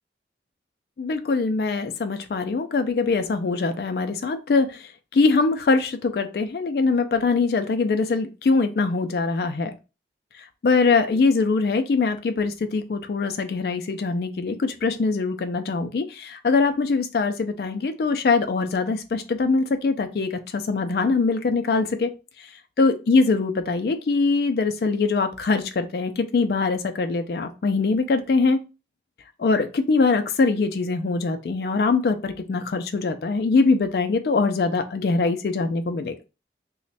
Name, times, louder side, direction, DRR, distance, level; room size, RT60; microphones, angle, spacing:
voice 1, 1.0-9.8 10.6-22.1 22.8-28.6 29.4-36.1, left 4 dB, 60° left, 8 dB, 0.3 m, -22 dB
3.1 x 2.1 x 4.0 m, 0.30 s
head